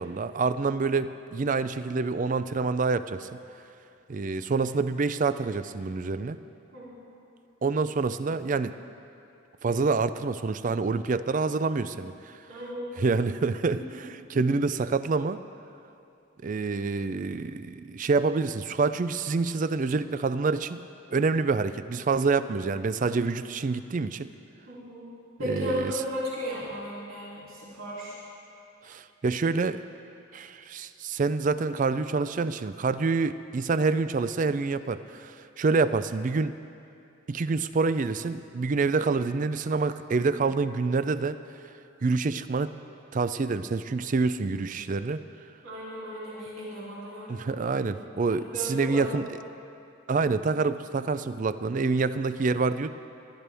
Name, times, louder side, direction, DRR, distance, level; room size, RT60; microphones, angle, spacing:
voice 1, 0.0-3.4 4.1-6.4 7.6-8.8 9.6-12.3 13.0-13.8 14.3-15.4 16.4-20.8 21.1-24.3 25.5-25.9 28.8-29.8 30.3-36.5 37.3-41.4 42.0-42.7 43.1-45.2 47.3-49.2 50.1-52.9, right 4 dB, 40° right, 13 dB, 0.4 m, -27 dB
voice 2, 6.7-7.1 12.5-12.9 13.7-14.0 24.7-25.1 25.4-28.2 45.6-48.0 48.3-49.0, equal, 75° right, -8 dB, 3.3 m, -35 dB
20.0 x 12.5 x 3.4 m, 2.6 s
head